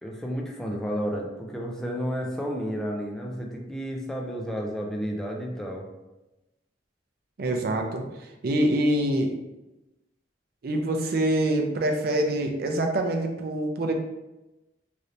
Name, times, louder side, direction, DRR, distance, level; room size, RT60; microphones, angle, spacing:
voice 1, 0.0-5.9, equal, 5° left, -1 dB, 0.4 m, -31 dB
voice 2, 7.4-9.3 10.6-13.9, right 1 dB, 55° right, 3 dB, 0.4 m, -25 dB
3.2 x 2.7 x 2.6 m, 1.0 s
head